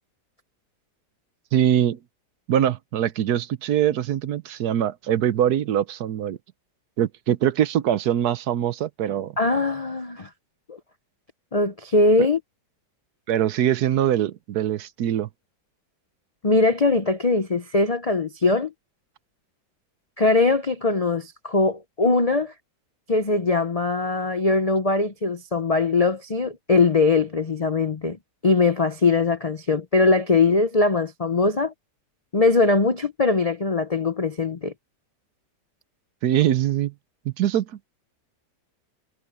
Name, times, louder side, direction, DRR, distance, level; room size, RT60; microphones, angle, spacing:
voice 1, 1.5-2.0 2.5-6.4 7.0-9.3 13.3-15.3 36.2-36.9 37.2-37.8, right 10 dB, 70° right, 1.2 m, -23 dB
voice 2, 9.4-10.3 10.7-10.8 11.5-12.4 16.4-18.7 20.2-22.5 23.1-31.7 32.3-34.7, left 3 dB, 45° left, 0.4 m, -21 dB
omnidirectional pair, 1.8 m